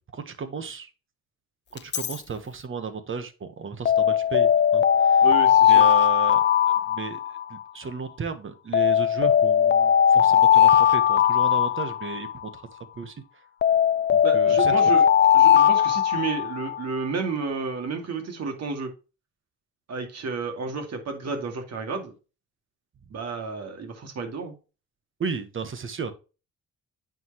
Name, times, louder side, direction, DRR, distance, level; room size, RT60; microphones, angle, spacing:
voice 1, 0.1-0.9 1.7-5.3 5.7-6.4 6.9-7.2 7.5-13.2 14.1-14.7 25.2-26.1, right 5 dB, 40° right, 10 dB, 1.4 m, -34 dB
Alarm, 1.8-2.1 3.9-7.6 8.7-12.5 13.6-16.8, left 9 dB, 40° left, 0.4 m, -19 dB
voice 2, 5.2-5.9 14.2-15.0 15.3-18.9 19.9-22.1 23.1-24.5, right 4 dB, 60° right, 4 dB, 2.4 m, -31 dB
9.1 x 4.9 x 3.1 m, 0.32 s
cardioid pair, 90°, 30 cm